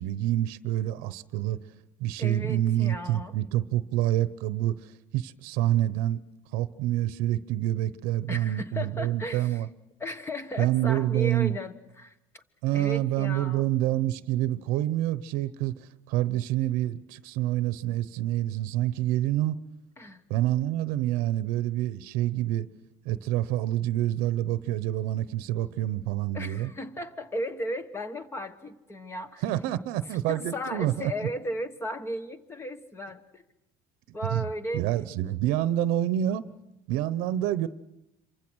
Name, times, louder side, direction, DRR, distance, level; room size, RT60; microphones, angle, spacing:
voice 1, 0.0-1.6 2.0-6.2 6.5-9.7 10.6-11.6 12.6-19.6 20.3-22.7 23.0-26.7 29.4-31.1 34.3-34.5 34.7-36.5 36.9-37.7, right 13 dB, 90° right, 0.9 m, -27 dB
voice 2, 2.2-3.4 8.3-9.6 10.0-12.4 12.7-13.7 20.0-20.2 26.3-29.4 30.1-33.4 34.1-34.9, left 1 dB, 15° left, 1.2 m, -35 dB
27.0 x 24.0 x 6.3 m
cardioid pair, 150°, 14 cm